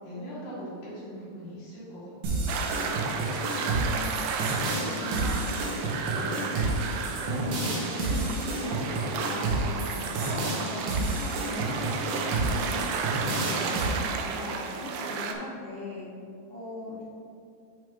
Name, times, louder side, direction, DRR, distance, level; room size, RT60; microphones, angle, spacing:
voice 1, 0.0-2.8 4.9-6.4, equal, 60° left, -10 dB, 3.2 m, -41 dB
sound 1, 2.2-13.9, right 2 dB, 65° right, 2.3 m, -30 dB
sound 2, 2.5-15.3, right 5 dB, 85° right, 2.5 m, -33 dB
voice 2, 3.8-4.3 4.7-5.4 7.2-12.8 13.2-13.8 14.2-16.1 16.5-17.0, left 2 dB, 85° left, -11 dB, 1.3 m, -39 dB
7.5 x 6.2 x 3.7 m, 2.4 s
omnidirectional pair, 5.3 m